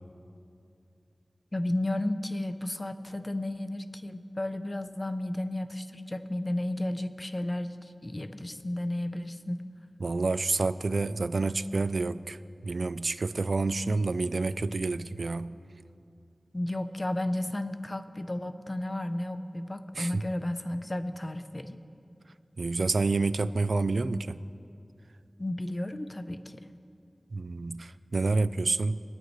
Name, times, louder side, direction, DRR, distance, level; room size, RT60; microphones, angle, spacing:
voice 1, 1.5-9.7 16.5-21.8 25.4-26.7, left 1 dB, 35° left, 10 dB, 0.6 m, -33 dB
voice 2, 10.0-15.6 19.9-20.2 22.6-24.4 27.3-29.0, right 3 dB, 85° right, 15 dB, 0.3 m, -28 dB
24.0 x 9.1 x 3.2 m, 2.6 s
wide cardioid pair, 55°, 0 cm